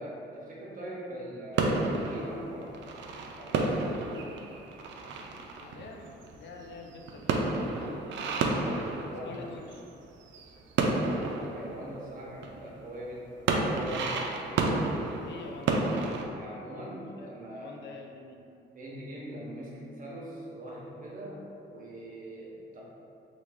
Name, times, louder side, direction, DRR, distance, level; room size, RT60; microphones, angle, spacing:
voice 1, 0.0-3.0 3.4-4.2 9.0-9.5 11.0-14.3 16.3-17.8 18.8-22.8, equal, 45° right, -4 dB, 0.9 m, -42 dB
sound 1, 1.5-9.9 10.2-12.8 13.2-16.2, right 3 dB, 70° right, 0.4 m, -31 dB
voice 2, 5.6-8.6 9.2-9.8 10.8-11.2 15.2-16.2 17.2-18.4, left 3 dB, 65° left, 1 dB, 0.5 m, -46 dB
3.1 x 2.4 x 3.5 m, 2.6 s
cardioid pair, 90°, 20 cm